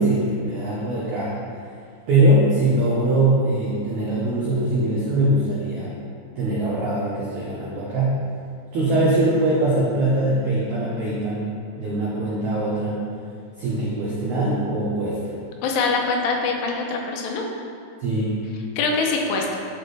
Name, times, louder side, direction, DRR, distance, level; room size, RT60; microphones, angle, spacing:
voice 1, 0.0-1.4 2.1-5.9 6.4-8.1 8.7-11.5 11.7-13.0 13.6-15.3 18.0-18.4, right 1 dB, 90° right, -7 dB, 1.6 m, -22 dB
voice 2, 15.6-17.4 18.8-19.6, left 4 dB, 85° left, 1 dB, 2.8 m, -23 dB
11.5 x 4.4 x 3.2 m, 2.3 s
omnidirectional pair, 5.0 m